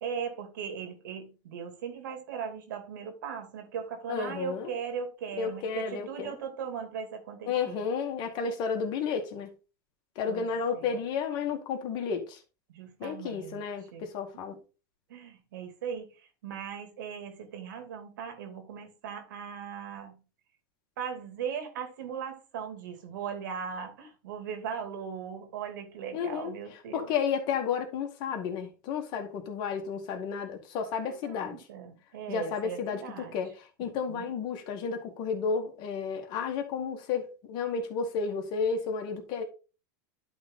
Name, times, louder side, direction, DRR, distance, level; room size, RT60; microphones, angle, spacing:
voice 1, 0.0-7.8 10.3-10.9 12.7-13.6 13.9-14.1 15.1-20.2 21.0-27.1 31.0-33.4 34.1-34.3, right 7 dB, 80° right, 2.7 m, -38 dB
voice 2, 4.1-4.7 5.4-6.4 7.5-9.5 10.2-12.4 13.0-14.6 26.1-26.5 26.9-31.6 32.3-39.4, left 6 dB, 50° left, 2.1 m, -32 dB
11.5 x 4.0 x 3.9 m
supercardioid pair, 125°, 10 cm